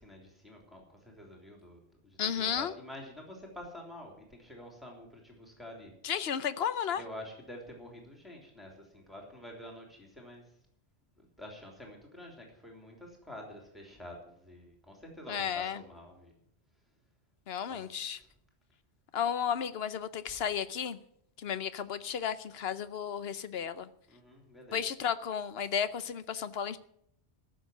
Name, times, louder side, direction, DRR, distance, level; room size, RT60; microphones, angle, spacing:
voice 1, 0.0-5.9 6.9-10.4 11.2-16.3 17.7-17.8 18.1-18.3 24.1-24.8, left 1 dB, ahead, 0 dB, 3.3 m, -48 dB
voice 2, 2.2-2.7 6.0-7.0 15.3-15.8 17.5-18.2 19.1-21.0 21.4-23.9 24.7-26.8, left 8 dB, 70° left, 13 dB, 1.0 m, -33 dB
14.5 x 6.6 x 9.2 m, 0.72 s
omnidirectional pair, 1.1 m